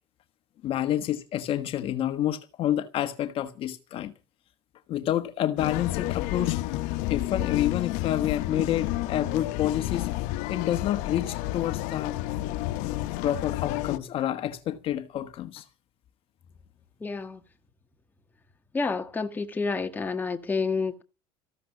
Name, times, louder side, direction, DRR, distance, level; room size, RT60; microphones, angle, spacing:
voice 1, 0.6-4.1 4.9-6.6 7.1-10.1 10.5-12.2 13.2-15.6, left 11 dB, 45° left, 1.4 m, -28 dB
sound 1, 5.6-14.0, left 16 dB, 75° left, 1.1 m, -30 dB
voice 2, 17.0-17.4 18.7-21.0, left 4 dB, 15° left, 1.6 m, -29 dB
14.5 x 12.5 x 6.2 m
cardioid pair, 155°, 13 cm